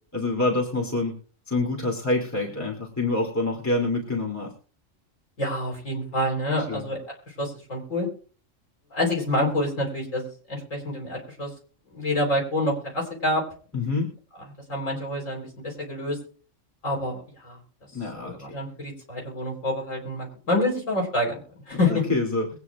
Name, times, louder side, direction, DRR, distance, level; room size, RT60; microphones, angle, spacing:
voice 1, 0.1-1.1 1.5-4.5 6.7-6.8 13.7-14.1 17.9-18.6 21.8-22.5, left 2 dB, 15° left, -1 dB, 2.7 m, -26 dB
voice 2, 5.4-7.0 7.3-8.1 8.9-11.5 11.9-13.4 14.7-16.2 16.8-17.6 18.1-21.4 21.7-22.0, left 1 dB, 80° left, -2 dB, 4.5 m, -27 dB
22.5 x 9.5 x 2.4 m, 0.41 s
omnidirectional pair, 1.3 m